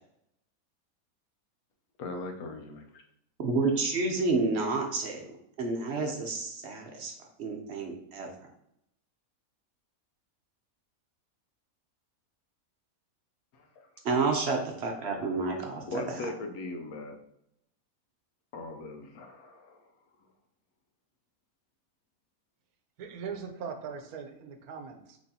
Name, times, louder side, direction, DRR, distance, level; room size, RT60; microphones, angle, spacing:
voice 1, 2.0-3.0 13.5-13.9 15.9-17.2 18.5-19.8, left 2 dB, 80° left, 5 dB, 1.1 m, -39 dB
voice 2, 3.4-7.1 7.4-8.3 14.0-15.8, right 3 dB, 55° right, 2 dB, 0.8 m, -30 dB
voice 3, 23.0-25.2, right 6 dB, 85° right, 5 dB, 1.2 m, -40 dB
6.0 x 3.1 x 2.7 m, 0.76 s
omnidirectional pair, 1.5 m